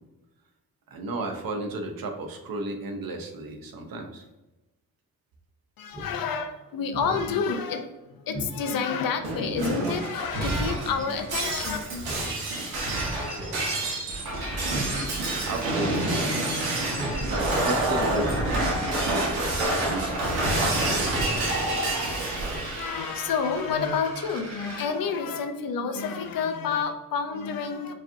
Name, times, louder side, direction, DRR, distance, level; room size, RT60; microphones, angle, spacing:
voice 1, 0.9-4.2 12.7-13.0 13.4-13.5 15.5-16.3 17.2-18.4 19.0-20.2 20.6-21.4, right 2 dB, 65° right, 4 dB, 0.7 m, -34 dB
voice 2, 5.8-11.8 22.6-27.9, left 5 dB, 65° left, 7 dB, 0.6 m, -29 dB
Speech synthesizer, 5.9-6.1 6.5-6.6 6.9-7.3 7.7-7.8 8.3-8.5 8.9-9.0 9.4-9.8 10.7-11.0 12.0-12.4 12.6-12.7 13.3-13.7 13.9-14.2 14.6-14.9 15.3-15.4 15.8-16.0 16.9-17.2 17.5-17.7 18.1-18.4 18.8-18.9, right 1 dB, 20° right, 0.7 m, -37 dB
Shatter, 9.2-24.8, right 1 dB, 85° right, 1.2 m, -28 dB
4.7 x 2.9 x 2.6 m, 1.0 s
wide cardioid pair, 130°, 37 cm